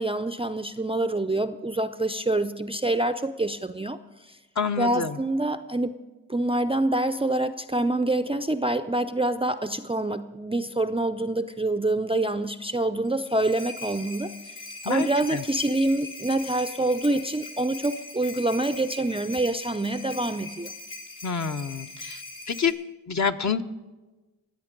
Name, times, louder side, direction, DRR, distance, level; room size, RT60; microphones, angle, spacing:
voice 1, 0.0-4.0 4.3-4.4 4.8-5.9 6.3-14.3 14.8-20.7, right 2 dB, 15° right, 0.5 m, -26 dB
voice 2, 4.6-5.2 14.8-15.4 21.2-22.2 22.5-22.7 23.1-23.6, left 6 dB, 40° left, 0.9 m, -27 dB
sound 1, 13.0-22.7, left 2 dB, 85° left, 2.4 m, -41 dB
22.5 x 8.2 x 5.2 m
supercardioid pair, 45°, 43 cm